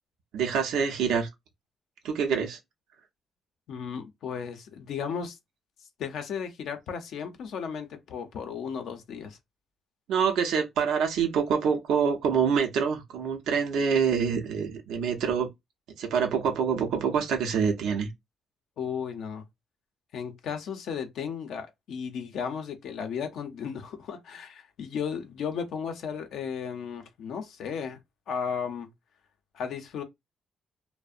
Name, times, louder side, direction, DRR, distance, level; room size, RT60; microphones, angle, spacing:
voice 1, 0.3-1.3 2.0-2.6 10.1-15.5 16.0-18.1, right 6 dB, 85° right, 0.5 m, -26 dB
voice 2, 3.7-5.4 6.0-9.4 18.8-19.5 20.1-28.0 28.3-28.9 29.5-30.0, left 7 dB, 75° left, 0.5 m, -35 dB
2.6 x 2.0 x 2.4 m
cardioid pair, 90°, 0 cm